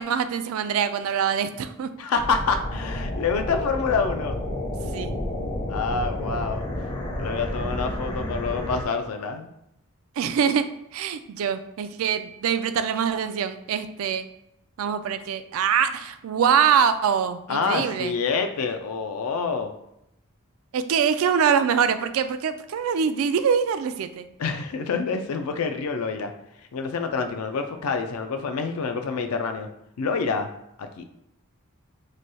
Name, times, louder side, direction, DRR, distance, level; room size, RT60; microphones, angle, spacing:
voice 1, 0.0-1.9 4.9-5.1 10.2-10.7 10.9-14.2 14.8-18.1 20.7-24.3, right 7 dB, 70° right, 10 dB, 0.3 m, -24 dB
voice 2, 2.0-4.4 5.7-6.6 7.2-9.5 17.5-19.7 24.4-26.3 26.7-29.7 30.0-30.5 30.8-31.0, left 5 dB, 80° left, 7 dB, 0.4 m, -27 dB
sound 1, 2.2-8.8, left 1 dB, 20° left, 0.5 m, -30 dB
3.1 x 2.2 x 4.0 m, 0.81 s
head